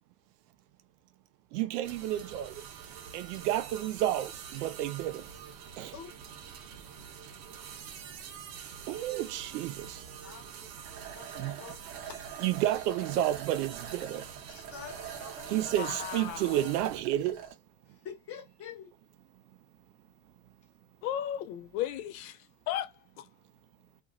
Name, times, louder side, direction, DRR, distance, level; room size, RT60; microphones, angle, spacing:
voice 1, 1.5-2.6 3.1-5.2 5.8-5.9 8.9-10.0 11.4-11.6 12.4-14.2 15.5-17.4, right 13 dB, 90° right, 0.6 m, -31 dB
sound 1, 1.8-17.0, right 7 dB, 60° right, 0.8 m, -46 dB
voice 2, 5.7-6.1 10.2-10.7 11.1-12.2 14.5-15.8 17.9-18.9, left 7 dB, 30° left, 1.1 m, -47 dB
sound 2, 10.9-17.5, right 8 dB, 30° right, 0.6 m, -45 dB
voice 3, 15.8-16.7 21.0-22.4 22.7-23.3, left 11 dB, 65° left, 0.6 m, -35 dB
2.9 x 2.5 x 2.4 m
supercardioid pair, 160°, 45 cm